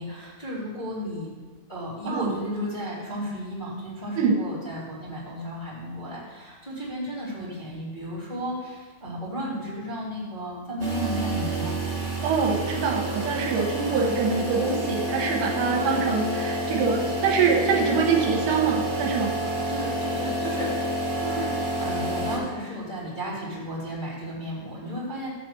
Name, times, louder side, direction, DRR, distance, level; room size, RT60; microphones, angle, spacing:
voice 1, 0.0-1.3 1.7-11.7 13.9-14.1 15.8-16.0 19.7-21.5 21.8-25.3, equal, 10° left, -9 dB, 3.1 m, -33 dB
sound 1, 10.8-22.4, right 1 dB, 15° right, 0.9 m, -29 dB
voice 2, 12.2-19.3, right 5 dB, 80° right, 1 dB, 3.1 m, -24 dB
11.5 x 4.2 x 7.7 m, 1.4 s
omnidirectional pair, 5.2 m